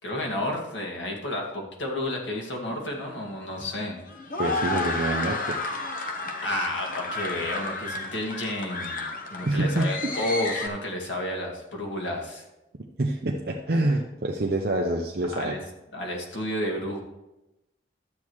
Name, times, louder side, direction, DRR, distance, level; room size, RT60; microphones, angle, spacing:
voice 1, 0.0-4.0 6.4-12.4 15.3-15.6 15.9-17.0, left 1 dB, 85° left, 0 dB, 2.2 m, -31 dB
sound 1, 2.7-10.7, left 2 dB, 45° left, 1.0 m, -32 dB
voice 2, 4.4-5.6 9.4-10.1 13.0-15.6, right 1 dB, 55° right, 0 dB, 0.7 m, -26 dB
12.5 x 8.4 x 3.1 m, 0.96 s
head